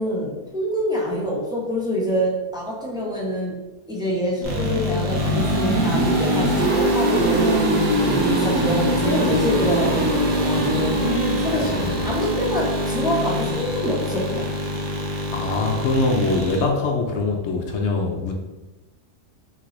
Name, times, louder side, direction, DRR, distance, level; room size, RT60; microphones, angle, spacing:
voice 1, 0.0-3.6 3.9-11.0 11.4-14.5, equal, 5° right, -4 dB, 0.6 m, -26 dB
sound 1, 4.4-16.6, right 1 dB, 75° right, 1.5 m, -22 dB
voice 2, 11.0-11.9 15.3-18.3, left 3 dB, 65° left, 2 dB, 0.7 m, -23 dB
3.7 x 3.2 x 3.8 m, 1.1 s
omnidirectional pair, 1.6 m